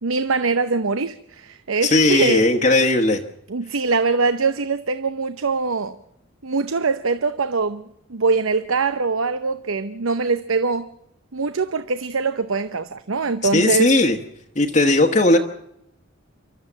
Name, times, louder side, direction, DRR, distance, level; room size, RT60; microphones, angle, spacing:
voice 1, 0.0-2.4 3.5-6.0 6.4-10.9 11.3-13.9, right 4 dB, 90° right, 0.8 m, -23 dB
voice 2, 1.8-3.2 13.5-14.2 14.5-15.4, left 2 dB, 35° left, 1.3 m, -17 dB
29.0 x 13.0 x 7.3 m
head